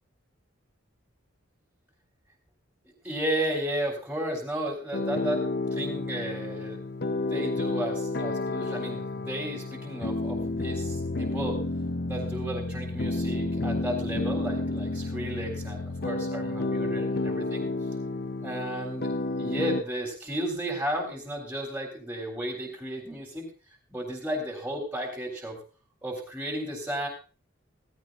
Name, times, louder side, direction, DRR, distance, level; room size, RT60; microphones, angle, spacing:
voice 1, 3.0-5.4 5.7-11.6 12.0-17.7 18.4-19.1 19.4-23.5 23.9-25.6 26.0-27.1, right 1 dB, 5° right, -1 dB, 3.6 m, -33 dB
sound 1, 4.9-19.8, left 2 dB, 50° left, 0.8 m, -31 dB
16.5 x 15.0 x 2.5 m, 0.36 s
head